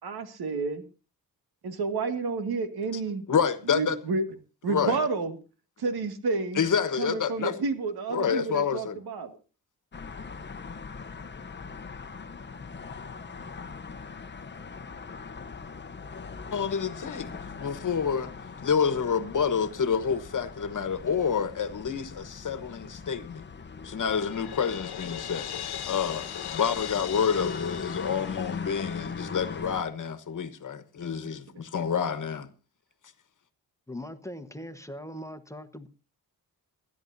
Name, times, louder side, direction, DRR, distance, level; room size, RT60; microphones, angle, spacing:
voice 1, 0.0-0.8 1.6-3.2 3.7-4.2 4.6-5.3 5.8-6.6 7.0-9.4, right 4 dB, 85° right, 2.1 m, -30 dB
voice 2, 3.3-4.0 4.7-5.0 6.5-7.6 8.1-9.0 16.5-17.3 17.6-18.3 18.6-23.4 23.8-25.5 25.9-26.2 26.5-32.5, left 7 dB, 55° left, 1.3 m, -28 dB
sound 1, 9.9-29.8, left 5 dB, 30° left, 0.8 m, -41 dB
Crash cymbal, 24.1-29.0, left 10 dB, 90° left, 1.2 m, -39 dB
voice 3, 33.9-35.9, left 1 dB, 10° left, 1.2 m, -40 dB
30.0 x 10.5 x 2.7 m
cardioid pair, 100°, 37 cm